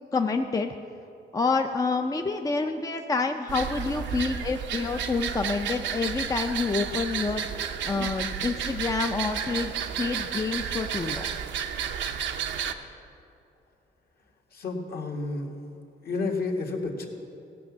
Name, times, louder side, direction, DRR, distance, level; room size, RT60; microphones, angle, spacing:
voice 1, 0.1-0.7 1.3-9.7 10.0-11.4, left 4 dB, 20° left, 5 dB, 0.5 m, -28 dB
sound 1, 3.5-12.7, right 7 dB, 85° right, 0.7 m, -32 dB
voice 2, 14.5-15.5 16.0-17.1, left 3 dB, 55° left, 2 dB, 1.7 m, -30 dB
16.5 x 6.0 x 7.3 m, 2.8 s
cardioid pair, 120°, 18 cm